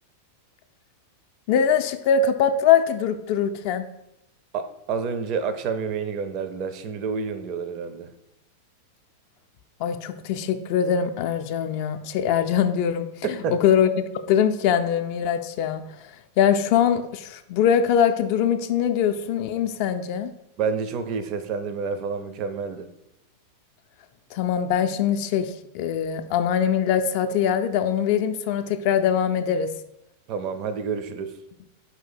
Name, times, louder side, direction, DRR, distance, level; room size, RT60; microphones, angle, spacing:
voice 1, 1.5-3.9 9.8-13.1 13.6-15.8 16.4-20.3 24.3-29.7, left 8 dB, 45° left, 9 dB, 0.3 m, -22 dB
voice 2, 4.5-8.1 13.2-13.5 20.6-22.9 30.3-31.3, right 5 dB, 40° right, 9 dB, 0.4 m, -29 dB
4.5 x 2.7 x 4.2 m, 0.83 s
figure-of-eight pair, 90°, 0 cm